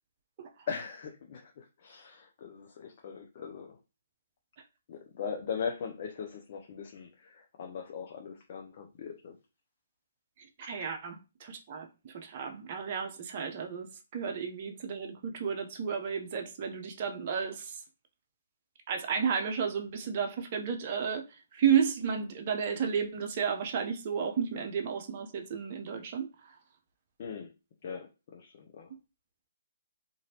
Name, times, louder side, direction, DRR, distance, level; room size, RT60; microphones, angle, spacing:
voice 1, 0.7-3.8 4.9-9.4 27.2-27.5 27.8-28.9, left 6 dB, 45° left, 0.5 m, -40 dB
voice 2, 10.6-17.8 18.9-21.2 21.5-26.3, right 7 dB, 40° right, 0.6 m, -32 dB
3.0 x 2.6 x 2.8 m
figure-of-eight pair, 135°, 0 cm